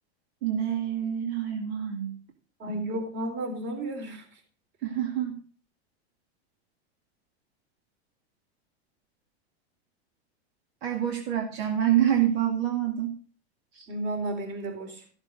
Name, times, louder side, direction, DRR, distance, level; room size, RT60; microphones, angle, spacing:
voice 1, 0.4-2.2 4.8-5.4 10.8-13.2 13.7-13.9, right 10 dB, 65° right, 3 dB, 2.2 m, -27 dB
voice 2, 2.6-4.2 13.9-15.0, right 1 dB, 35° right, 5 dB, 4.0 m, -32 dB
14.0 x 7.4 x 5.2 m, 0.41 s
supercardioid pair, 130°, 32 cm